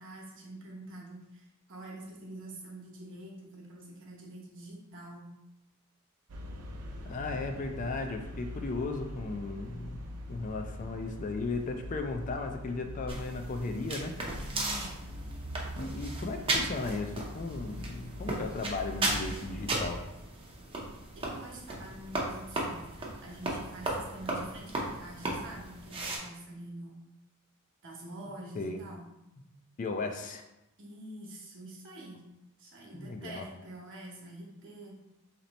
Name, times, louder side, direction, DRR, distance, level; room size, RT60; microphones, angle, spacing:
voice 1, 0.0-5.3 14.5-14.9 21.1-27.0 27.8-29.1 30.8-32.2 32.6-35.0, right 1 dB, 60° right, -2 dB, 1.0 m, -46 dB
sound 1, 6.3-20.0, left 1 dB, 90° right, 0.5 m, -43 dB
voice 2, 7.1-10.0 10.3-14.1 15.8-20.0 28.5-28.8 29.8-30.4 32.9-33.4, left 3 dB, 35° left, 5 dB, 0.3 m, -36 dB
sound 2, 13.1-26.2, right 2 dB, 25° right, 0.6 m, -36 dB
3.2 x 2.9 x 4.0 m, 0.91 s
head